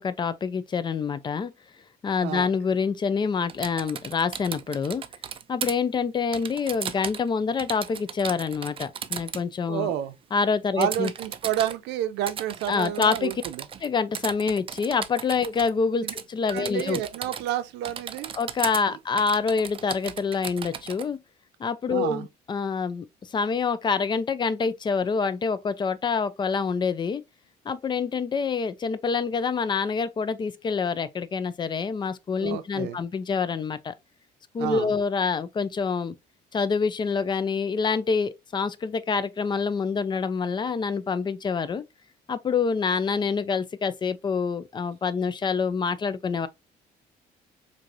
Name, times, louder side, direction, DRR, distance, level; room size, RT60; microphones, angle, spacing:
voice 1, 0.0-1.5 2.0-5.0 5.5-9.9 10.3-11.1 12.7-13.3 13.8-17.0 18.4-21.2 21.6-23.0 23.3-27.2 27.7-33.9 34.5-36.1 36.5-41.8 42.3-46.5, left 5 dB, 25° left, 0.4 m, -26 dB
voice 2, 2.2-2.5 9.7-10.1 10.8-13.7 16.0-16.1 16.5-18.3 18.9-19.0 21.9-22.3 32.4-33.0 34.6-34.9, right 11 dB, 85° right, 0.6 m, -30 dB
Typing, 3.5-5.7 6.3-7.3 7.6-9.4 10.8-11.8 12.3-13.9 14.1-15.7 16.1-16.2 16.5-17.6 17.8-18.8 19.2-21.1, right 8 dB, 35° right, 0.4 m, -36 dB
4.5 x 2.7 x 2.5 m
cardioid pair, 110°, 17 cm